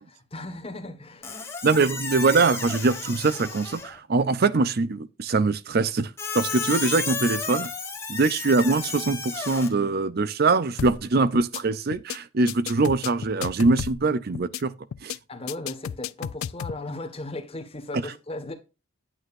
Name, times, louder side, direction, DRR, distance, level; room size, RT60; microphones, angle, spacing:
voice 1, 0.0-1.4 15.3-18.5, left 2 dB, 30° left, 1.5 m, -37 dB
Squeak, 1.2-4.0 6.2-9.7, left 5 dB, 15° left, 1.7 m, -32 dB
voice 2, 1.6-7.7 8.1-14.7 15.0-15.2 17.9-18.0, right 3 dB, 50° right, 0.5 m, -23 dB
sound 1, 10.8-11.1 11.3-11.6 11.9-12.2 12.5-14.1 14.3-14.6 14.9-15.2 15.5-16.8, left 8 dB, 80° left, 0.4 m, -33 dB
9.4 x 8.8 x 2.5 m
head